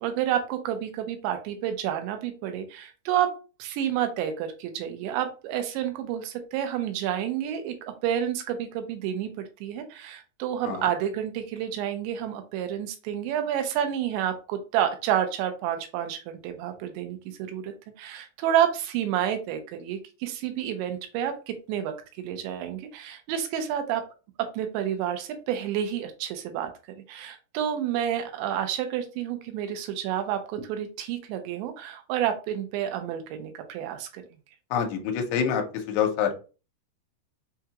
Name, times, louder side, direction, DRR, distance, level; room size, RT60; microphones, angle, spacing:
voice 1, 0.0-3.3 3.6-24.1 24.4-26.7 27.1-34.2, right 10 dB, 90° right, 7 dB, 3.0 m, -29 dB
voice 2, 34.7-35.6 35.9-36.3, left 8 dB, 80° left, 4 dB, 2.8 m, -25 dB
6.8 x 2.3 x 2.8 m, 0.34 s
omnidirectional pair, 5.0 m